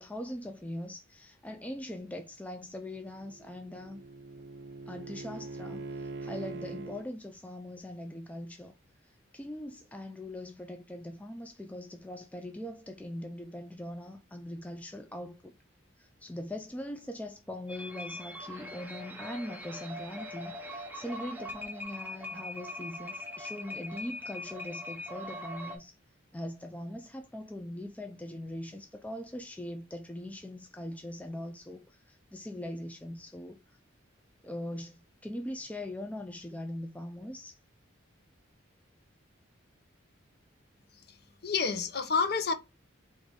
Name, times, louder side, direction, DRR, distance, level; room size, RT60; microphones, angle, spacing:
voice 1, 0.0-4.0 4.9-8.7 9.0-15.6 16.0-26.0 26.3-33.6 34.4-37.6, left 1 dB, 5° left, 0.3 m, -41 dB
Bowed string instrument, 3.0-7.1, right 3 dB, 55° right, 0.6 m, -42 dB
sound 1, 17.7-25.8, left 1 dB, 10° right, 0.7 m, -41 dB
voice 2, 41.4-42.5, left 5 dB, 50° left, 0.7 m, -29 dB
3.9 x 2.6 x 4.6 m
head